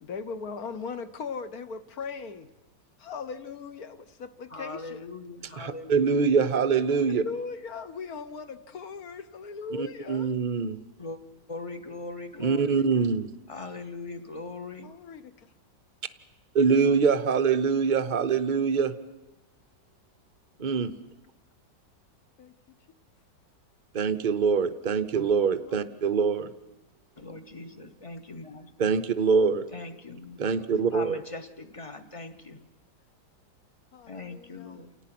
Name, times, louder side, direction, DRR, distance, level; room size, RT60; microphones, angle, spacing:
voice 1, 0.0-2.5 3.0-5.0 6.9-10.3 12.3-12.9 14.8-15.2 20.8-20.9 22.4-22.8 25.6-25.9 30.6-31.0 33.9-34.8, left 5 dB, 60° left, 11 dB, 1.3 m, -39 dB
voice 2, 4.5-6.3 11.0-11.2 11.5-12.7 13.5-14.9 27.2-28.7 29.7-30.4 30.9-32.7 34.1-34.9, left 3 dB, 25° left, 10 dB, 0.8 m, -40 dB
voice 3, 5.6-7.2 9.8-10.8 12.4-13.3 16.5-18.9 20.6-20.9 23.9-26.5 28.8-29.6 30.4-31.2, right 5 dB, 55° right, 10 dB, 0.5 m, -24 dB
29.0 x 18.0 x 5.9 m, 1.0 s
omnidirectional pair, 2.0 m